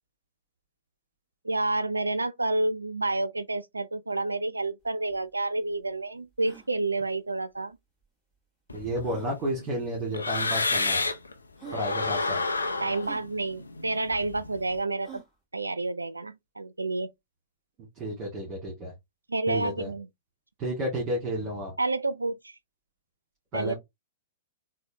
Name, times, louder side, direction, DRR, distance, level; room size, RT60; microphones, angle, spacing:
voice 1, 1.4-7.8 12.8-15.2 15.5-17.1 19.3-20.1 21.8-22.6 23.5-23.8, right 2 dB, 85° right, 0.3 m, -29 dB
sound 1, 4.8-4.9 5.1-5.2 5.7-5.8 6.3-6.7 8.0-8.1 9.0-9.3 10.3-10.4 11.1-11.2 11.6-11.9 13.0-13.3 15.0-15.3, right 8 dB, 5° left, 2.1 m, -47 dB
sound 2, 8.7-11.3 11.7-14.7, left 3 dB, 80° left, 0.5 m, -31 dB
voice 2, 8.7-11.0 11.7-12.4 17.9-18.9 19.5-19.9 20.6-21.7 23.5-23.8, right 1 dB, 25° right, 1.7 m, -31 dB
4.0 x 2.1 x 2.6 m
figure-of-eight pair, 105°, 0 cm